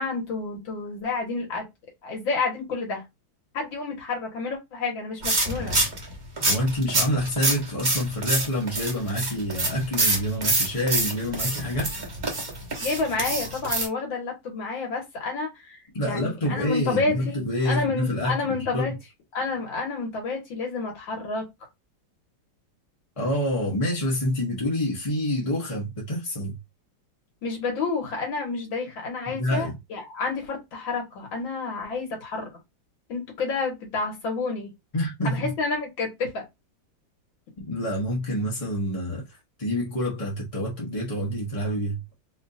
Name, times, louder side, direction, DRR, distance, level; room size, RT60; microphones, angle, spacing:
voice 1, 0.0-1.6 2.0-3.0 3.5-5.8 12.8-18.9 19.3-21.5 27.4-32.5 33.1-34.7 35.2-36.4, left 4 dB, 75° left, 2.3 m, -29 dB
sound 1, 5.2-13.9, right 2 dB, 30° right, 0.9 m, -27 dB
voice 2, 6.4-12.0 15.9-18.5 18.7-19.0 23.2-26.6 29.3-29.8 34.9-35.5 37.6-42.0, equal, 30° left, 0.7 m, -27 dB
4.3 x 2.6 x 2.6 m
omnidirectional pair, 2.1 m